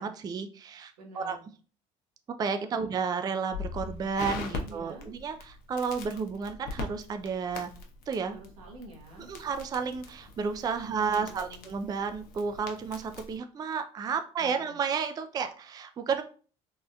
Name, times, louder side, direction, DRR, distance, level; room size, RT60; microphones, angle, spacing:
voice 1, 0.0-1.4 2.4-7.7 8.1-8.4 9.3-16.2, right 5 dB, 25° right, 8 dB, 0.3 m, -32 dB
voice 2, 1.0-1.4 2.6-2.9 4.6-5.1 8.3-9.3 10.8-11.7 14.4-14.8, right 2 dB, 90° right, -1 dB, 1.1 m, -48 dB
Crackle, 3.5-13.4, left 4 dB, 60° left, 0.7 m, -42 dB
3.4 x 2.5 x 2.2 m, 0.38 s
supercardioid pair, 90°, 17 cm